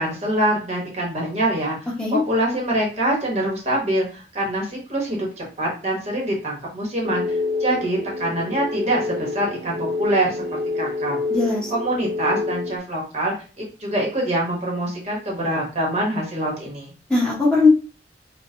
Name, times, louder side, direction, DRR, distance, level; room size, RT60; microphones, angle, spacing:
voice 1, 0.0-1.8 2.1-10.4 10.7-11.2 11.7-16.9, right 1 dB, 35° right, -2 dB, 1.0 m, -24 dB
sound 1, 7.0-12.8, left 3 dB, 55° right, 0.5 m, -27 dB
voice 2, 11.3-11.7 17.1-17.7, left 3 dB, 5° left, -5 dB, 1.0 m, -19 dB
4.0 x 2.2 x 2.7 m, 0.35 s
head